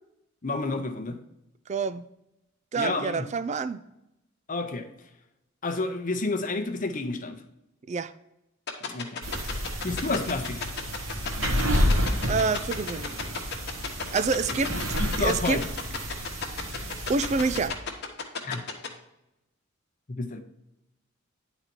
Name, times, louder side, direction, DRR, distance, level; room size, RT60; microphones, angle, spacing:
voice 1, 0.4-1.2 2.8-3.2 4.5-4.9 5.6-7.4 8.9-9.2 9.8-10.7 15.0-15.6 18.4-18.6 20.1-20.4, left 3 dB, 40° left, 0.7 m, -30 dB
voice 2, 1.7-2.0 2.7-3.8 7.9-8.1 12.3-13.5 14.1-14.8 15.2-15.6 17.1-17.8, right 4 dB, 35° right, 0.3 m, -27 dB
sound 1, 8.7-18.9, left 6 dB, 55° left, 1.1 m, -32 dB
sound 2, 9.2-17.7, equal, 75° right, 1.5 m, -30 dB
10.5 x 4.0 x 4.5 m
head